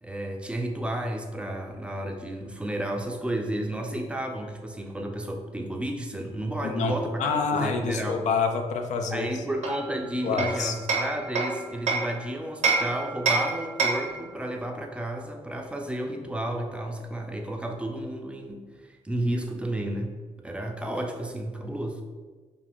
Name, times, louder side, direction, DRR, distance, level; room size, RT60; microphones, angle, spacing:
voice 1, 0.0-8.2 9.1-22.0, right 1 dB, 10° right, 2 dB, 0.4 m, -32 dB
voice 2, 6.6-6.9 7.2-9.3 10.2-10.7, left 5 dB, 75° left, 5 dB, 0.4 m, -27 dB
Hammer, 9.6-12.1 12.6-14.2, right 4 dB, 75° right, 0.6 m, -27 dB
2.5 x 2.4 x 3.3 m, 1.4 s
cardioid pair, 70°, 12 cm